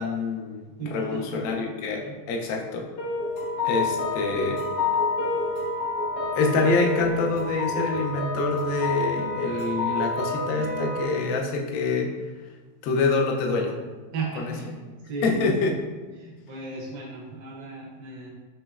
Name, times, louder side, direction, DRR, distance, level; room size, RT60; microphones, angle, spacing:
voice 1, 0.0-2.9 3.6-4.6 6.3-12.2 12.8-13.8 14.4-14.5 15.2-15.7, left 3 dB, 70° left, 2 dB, 0.8 m, -26 dB
voice 2, 0.8-1.4 1.9-2.2 3.7-4.0 11.6-11.7 14.1-14.8 15.1-15.6 16.2-18.3, right 3 dB, 65° right, -3 dB, 1.1 m, -35 dB
sound 1, 3.0-11.0, left 2 dB, 85° left, 1.8 m, -28 dB
6.1 x 3.0 x 2.3 m, 1.3 s
omnidirectional pair, 1.9 m